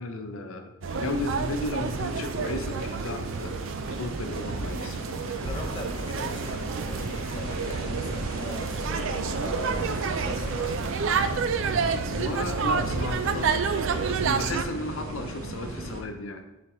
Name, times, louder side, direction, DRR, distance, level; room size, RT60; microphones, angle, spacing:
voice 1, 0.0-5.0 12.0-13.7 14.0-16.4, left 2 dB, 75° left, 5 dB, 0.7 m, -34 dB
sound 1, 0.8-14.6, right 5 dB, 65° right, 0.4 m, -30 dB
sound 2, 0.9-16.0, right 1 dB, 85° right, 1.0 m, -35 dB
voice 2, 5.4-10.7, left 1 dB, 20° left, 1 dB, 0.7 m, -41 dB
9.8 x 4.3 x 3.0 m, 0.96 s
head